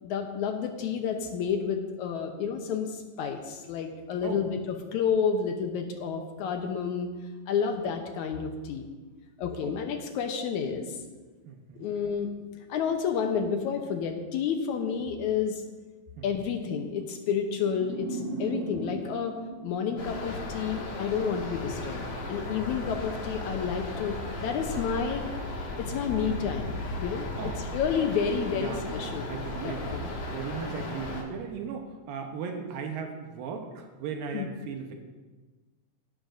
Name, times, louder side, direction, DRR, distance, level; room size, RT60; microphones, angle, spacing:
voice 1, 0.0-4.5 4.9-7.1 7.5-8.9 9.4-11.0 11.8-12.3 12.7-15.6 16.2-19.4 19.6-25.3 25.8-29.3 29.6-30.1 34.3-34.5, left 6 dB, 75° left, 5 dB, 1.9 m, -30 dB
voice 2, 11.5-11.9 16.2-16.3 25.9-26.0 27.4-28.0 28.3-30.0 30.3-34.9, right 6 dB, 80° right, 4 dB, 2.7 m, -37 dB
sound 1, 17.6-20.7, right 2 dB, 65° right, 2.0 m, -38 dB
sound 2, 20.0-31.2, left 2 dB, 60° left, 3.0 m, -36 dB
17.5 x 11.0 x 2.6 m, 1.3 s
omnidirectional pair, 4.1 m